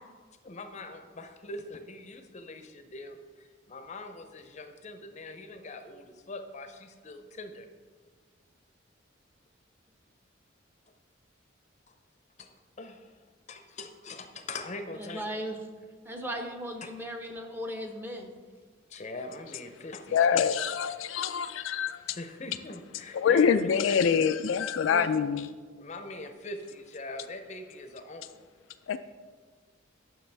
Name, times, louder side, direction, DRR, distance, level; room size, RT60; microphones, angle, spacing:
voice 1, 0.4-7.7 12.4-12.5 12.8-13.2 13.5-15.3 16.8-16.9 18.9-20.4 22.2-24.2 25.8-28.5, left 2 dB, 35° left, 8 dB, 0.6 m, -42 dB
voice 2, 14.9-15.6 16.0-18.3 24.9-25.1, equal, 10° right, 3 dB, 0.7 m, -37 dB
voice 3, 20.1-22.2 23.1-25.5 28.9-29.0, left 7 dB, 70° left, 11 dB, 0.3 m, -25 dB
9.3 x 6.1 x 3.4 m, 1.5 s
head